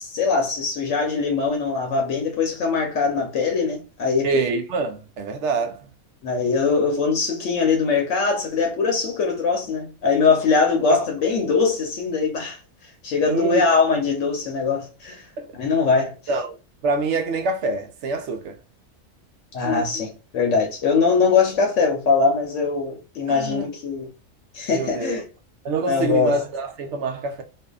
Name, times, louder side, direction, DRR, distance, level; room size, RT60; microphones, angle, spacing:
voice 1, 0.0-4.3 6.2-15.3 15.5-16.1 19.5-24.1 24.5-25.2 25.9-26.4, left 5 dB, 70° left, 1.0 m, -22 dB
voice 2, 4.2-5.8 10.9-11.0 13.3-13.6 15.4-15.5 16.3-16.5 16.8-18.5 23.3-23.7 24.7-25.2 25.6-27.4, right 3 dB, 70° right, 0.8 m, -25 dB
2.6 x 2.3 x 2.2 m
omnidirectional pair, 1.4 m